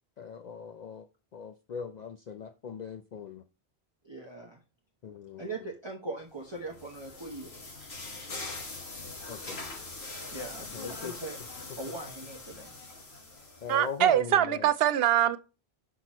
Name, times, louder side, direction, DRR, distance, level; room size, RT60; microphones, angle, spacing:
voice 1, 0.2-1.1 1.3-3.4 5.0-5.6 9.0-9.6 10.7-11.1 13.6-14.7, left 7 dB, 55° left, 0.5 m, -40 dB
voice 2, 4.0-4.6 5.4-7.5 10.3-11.4 11.8-12.7, right 2 dB, 30° right, 0.8 m, -40 dB
sound 1, 6.4-14.0, left 3 dB, 75° left, 1.7 m, -42 dB
voice 3, 13.7-15.4, right 11 dB, 70° right, 0.8 m, -23 dB
5.9 x 5.9 x 3.0 m
omnidirectional pair, 1.1 m